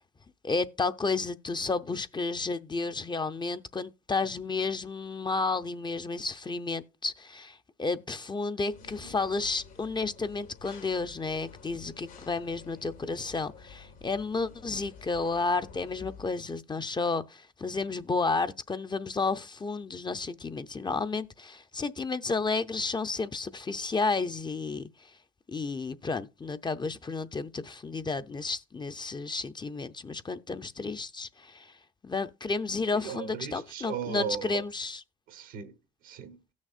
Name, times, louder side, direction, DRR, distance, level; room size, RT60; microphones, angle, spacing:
voice 1, 0.4-24.9 25.5-31.7 32.0-35.0, left 3 dB, 25° left, 0.6 m, -32 dB
sound 1, 8.7-16.3, left 5 dB, 85° left, 3.1 m, -50 dB
voice 2, 32.9-34.7 35.3-36.4, right 7 dB, 85° right, 1.3 m, -37 dB
16.5 x 6.3 x 2.4 m
supercardioid pair, 60°, 19 cm